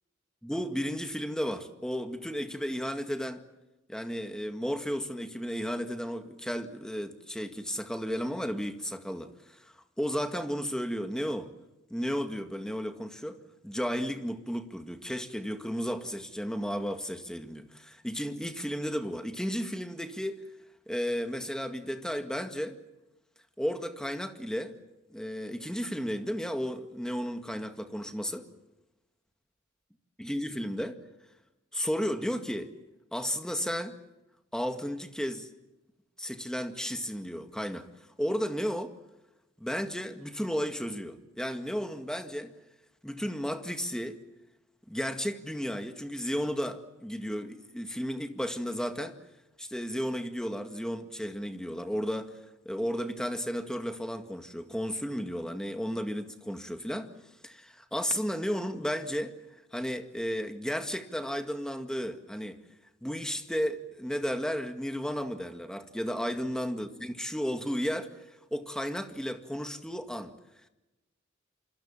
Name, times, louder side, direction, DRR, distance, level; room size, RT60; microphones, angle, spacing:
voice 1, 0.4-3.4 3.9-9.6 10.0-11.5 11.9-20.4 20.9-22.8 23.6-24.8 25.1-28.5 30.2-30.9 31.7-32.7 33.1-34.0 34.5-35.5 36.2-37.9 38.2-38.9 39.6-42.5 43.0-44.2 44.9-49.1 49.6-52.4 52.7-57.1 57.4-59.3 59.7-62.6 63.0-68.3 68.5-70.3, equal, 5° left, 2.0 m, -33 dB
27.5 x 26.0 x 7.3 m
head